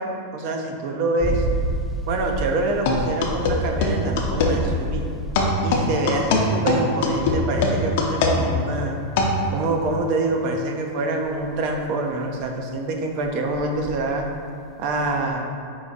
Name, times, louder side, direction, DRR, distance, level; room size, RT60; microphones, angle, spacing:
voice 1, 0.0-1.4 2.1-5.1 5.6-9.0 9.5-14.3 14.8-15.5, right 2 dB, 55° right, 2 dB, 0.6 m, -25 dB
sound 1, 1.2-6.4 7.0-8.0 9.2-10.3 11.2-12.6 13.2-14.1 14.5-15.3, right 1 dB, ahead, 0.4 m, -31 dB
sound 2, 2.9-4.6 5.4-9.4, left 3 dB, 65° left, 0.6 m, -21 dB
4.7 x 2.4 x 4.0 m, 2.5 s
hypercardioid pair, 125°, 0 cm